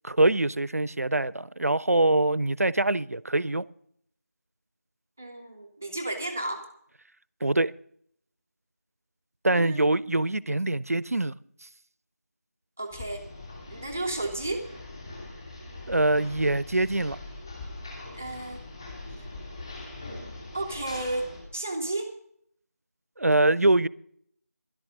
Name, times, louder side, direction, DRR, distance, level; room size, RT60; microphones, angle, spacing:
voice 1, 0.0-3.6 7.4-7.7 9.4-11.3 15.9-17.2 23.2-23.9, right 2 dB, 65° right, 0.5 m, -24 dB
voice 2, 5.2-6.7 9.5-10.1 12.8-13.3 13.7-14.7 18.1-18.6 20.5-21.3 21.5-22.1, right 2 dB, 10° right, 0.5 m, -33 dB
sound 1, 12.9-21.4, left 2 dB, 15° left, 2.6 m, -42 dB
12.0 x 11.5 x 5.2 m
figure-of-eight pair, 170°, 9 cm